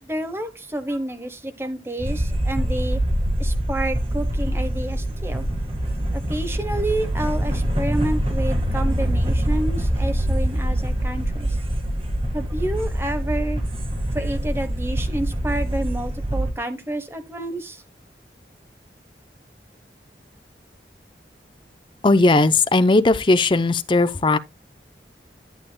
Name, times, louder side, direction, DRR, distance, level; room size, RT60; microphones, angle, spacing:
voice 1, 0.0-3.0 3.4-5.5 6.1-11.6 12.3-13.6 14.1-17.8, right 1 dB, 15° right, 1.0 m, -29 dB
sound 1, 2.0-16.5, right 1 dB, 30° right, 1.6 m, -24 dB
voice 2, 22.0-24.4, left 2 dB, 30° left, 0.5 m, -17 dB
11.5 x 8.4 x 2.2 m
head